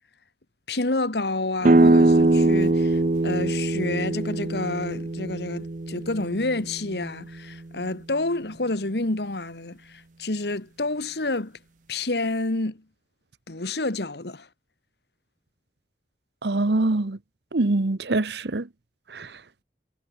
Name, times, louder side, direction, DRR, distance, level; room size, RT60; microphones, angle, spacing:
voice 1, 0.7-11.5 11.9-12.8 13.5-14.5, left 2 dB, 75° left, 1.7 m, -29 dB
sound 1, 1.6-7.2, right 2 dB, 45° right, 0.7 m, -22 dB
voice 2, 16.4-17.2 17.5-18.7 19.1-19.4, right 2 dB, 75° right, 1.0 m, -24 dB
head